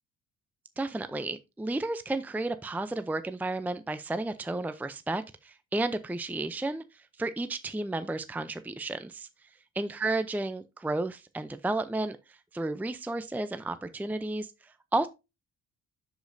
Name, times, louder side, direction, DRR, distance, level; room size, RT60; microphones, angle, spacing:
voice 1, 0.8-9.5 9.8-15.1, right 2 dB, 5° right, 0.5 m, -32 dB
11.5 x 5.1 x 2.6 m
cardioid pair, 90°, 30 cm